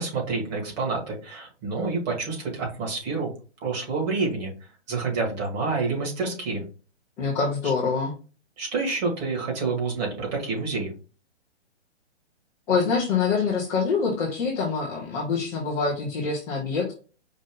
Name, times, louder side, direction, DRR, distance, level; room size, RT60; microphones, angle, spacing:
voice 1, 0.0-3.3 3.6-4.5 4.9-6.6 8.6-10.9, right 4 dB, 35° right, 0 dB, 2.1 m, -28 dB
voice 2, 7.2-8.1 12.7-16.9, left 5 dB, 5° left, -7 dB, 0.4 m, -25 dB
5.2 x 2.7 x 3.6 m, 0.35 s
hypercardioid pair, 145°, 36 cm